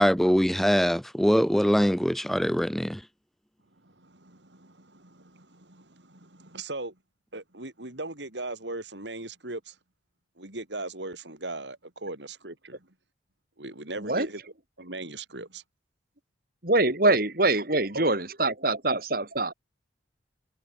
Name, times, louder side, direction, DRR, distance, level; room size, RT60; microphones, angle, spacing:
voice 1, 0.0-3.0, equal, ahead, 0.8 m, -23 dB
voice 2, 3.8-7.0 7.3-9.8 10.4-12.9 13.6-14.4 14.8-15.6 17.0-17.2 17.9-18.1, right 2 dB, 80° right, 5.5 m, -38 dB
voice 3, 16.6-19.5, right 2 dB, 55° right, 5.0 m, -24 dB
head